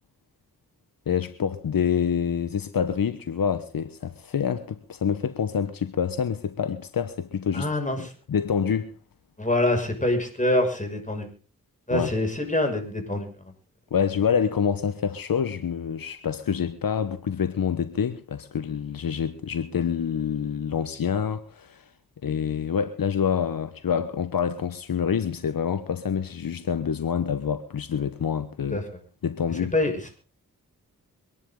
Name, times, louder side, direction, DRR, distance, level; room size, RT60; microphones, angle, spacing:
voice 1, 1.1-7.7 8.0-8.9 11.9-12.1 13.9-21.8 22.2-28.8 29.2-29.7, left 7 dB, 70° left, 1.1 m, -27 dB
voice 2, 7.5-8.1 9.4-11.3 11.9-13.3 28.7-28.8 29.7-29.9, left 1 dB, 20° left, 6.1 m, -25 dB
24.5 x 11.0 x 3.8 m
cardioid pair, 45°, 35 cm